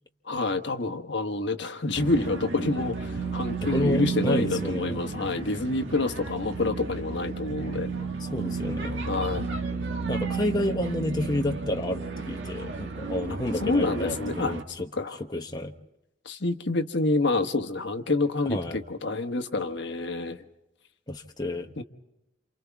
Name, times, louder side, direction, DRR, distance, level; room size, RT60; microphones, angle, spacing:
voice 1, 0.3-7.9 9.0-9.5 13.6-14.5 14.9-15.2 16.2-20.4 21.8-21.9, left 2 dB, 65° left, 6 dB, 1.4 m, -28 dB
sound 1, 1.9-14.6, right 4 dB, 70° right, 1.9 m, -33 dB
voice 2, 3.7-5.0 8.2-9.0 10.1-14.9 15.3-15.7 18.5-18.8 21.1-21.7, left 1 dB, 20° left, 3 dB, 1.1 m, -30 dB
28.5 x 28.5 x 3.6 m, 0.90 s
head